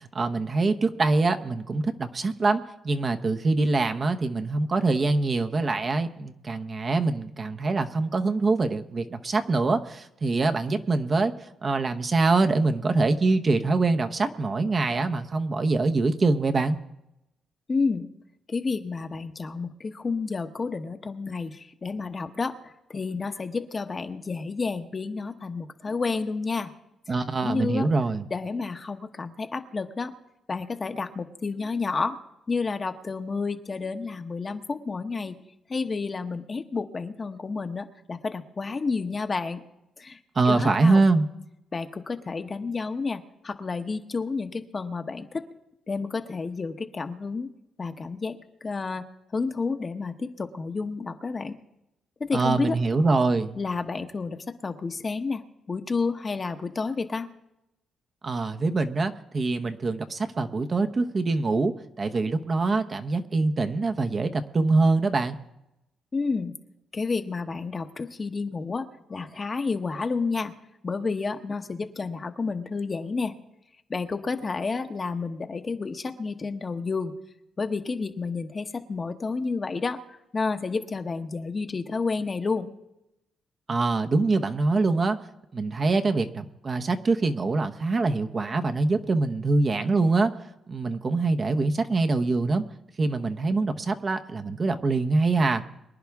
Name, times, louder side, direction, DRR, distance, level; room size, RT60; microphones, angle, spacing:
voice 1, 0.0-11.3 11.6-16.8 27.1-28.2 40.3-41.3 52.3-53.5 58.2-61.7 62.0-65.4 83.7-85.2 85.5-90.3 90.7-92.6 93.0-95.6, right 3 dB, 35° right, 7 dB, 1.0 m, -24 dB
voice 2, 17.7-18.1 18.5-26.7 27.1-27.9 28.3-30.1 30.5-32.2 32.5-35.4 35.7-39.6 40.0-41.0 41.7-45.5 45.9-47.5 47.8-49.1 49.3-51.5 52.2-52.8 53.6-55.4 55.7-57.3 66.1-66.5 66.9-70.5 70.8-73.3 73.9-77.2 77.6-80.0 80.3-82.8, left 4 dB, 35° left, 7 dB, 1.1 m, -30 dB
24.0 x 10.5 x 3.6 m, 0.87 s
cardioid pair, 90°, 0 cm